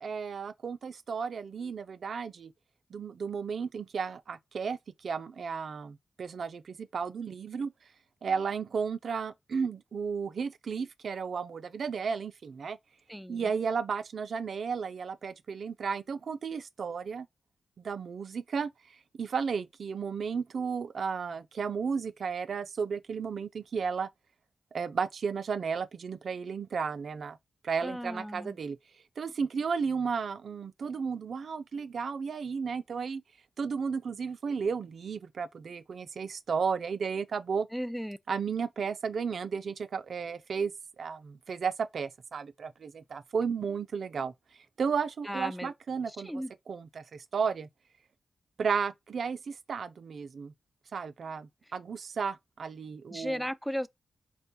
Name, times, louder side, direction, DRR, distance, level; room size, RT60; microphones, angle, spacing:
voice 1, 0.0-2.5 2.9-7.7 8.2-12.8 13.3-17.3 17.8-24.1 24.7-27.4 27.6-28.8 29.2-33.2 33.6-37.7 38.3-44.3 44.8-47.7 48.6-50.5 50.9-53.5, right 6 dB, 70° right, 0.4 m, -33 dB
voice 2, 13.1-13.5 27.8-28.6 37.7-38.2 45.3-45.7 46.2-46.5 53.1-53.9, equal, ahead, 0.4 m, -35 dB
4.7 x 2.2 x 3.9 m
supercardioid pair, 45°, 0 cm